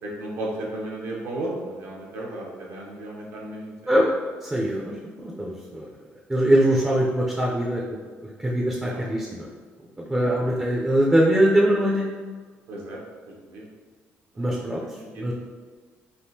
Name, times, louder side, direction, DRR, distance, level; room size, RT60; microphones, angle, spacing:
voice 1, 0.0-4.1 8.8-9.0 10.2-10.4 12.7-13.6 14.3-14.6 15.0-15.3, right 1 dB, 75° right, -3 dB, 0.9 m, -35 dB
voice 2, 4.4-5.0 5.2-5.9 6.3-8.0 8.2-9.5 10.0-12.1 14.4-14.8 15.1-15.3, right 1 dB, 10° right, -3 dB, 0.4 m, -22 dB
3.5 x 2.5 x 2.7 m, 1.5 s
cardioid pair, 115°, 5 cm